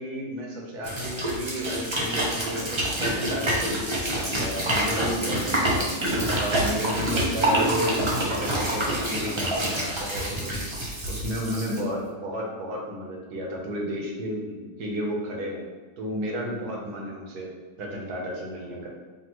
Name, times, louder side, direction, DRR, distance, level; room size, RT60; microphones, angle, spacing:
voice 1, 0.0-5.9 6.3-10.6 11.1-15.6 16.0-17.5 17.8-18.9, equal, 75° right, -1 dB, 1.4 m, -32 dB
sound 1, 0.8-11.8, right 1 dB, 40° right, 0.4 m, -27 dB
5.1 x 2.7 x 3.0 m, 1.4 s
omnidirectional pair, 1.7 m